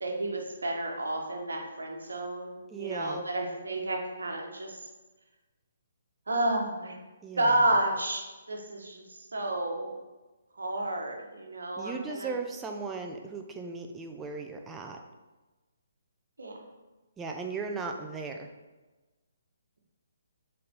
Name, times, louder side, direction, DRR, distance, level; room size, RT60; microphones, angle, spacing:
voice 1, 0.0-4.9 6.3-6.9 7.4-10.0 10.5-12.3 16.4-16.7, right 1 dB, 80° right, 1 dB, 1.3 m, -31 dB
voice 2, 2.7-3.2 7.2-7.6 11.7-15.0 17.2-18.5, right 4 dB, 10° right, 3 dB, 0.6 m, -37 dB
6.6 x 4.1 x 3.7 m, 1.2 s
hypercardioid pair, 145°, 0 cm